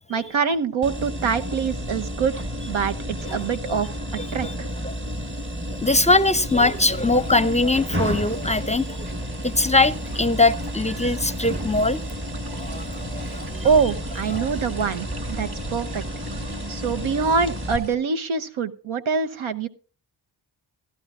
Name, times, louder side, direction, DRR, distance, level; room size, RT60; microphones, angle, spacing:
voice 1, 0.1-2.9 3.3-3.9 4.3-4.5 13.6-16.0 16.7-19.7, right 5 dB, 85° right, 9 dB, 0.9 m, -24 dB
sound 1, 0.8-17.8, equal, 25° right, 1.3 m, -32 dB
voice 2, 3.2-3.7 4.2-4.5 4.8-4.9 5.8-9.1 9.4-12.0 12.5-13.7 14.3-14.5, left 2 dB, 15° left, 16 dB, 0.6 m, -22 dB
sound 2, 6.6-17.9, right 2 dB, 50° right, 1.6 m, -38 dB
15.5 x 12.0 x 2.5 m, 0.38 s
cardioid pair, 55°, 47 cm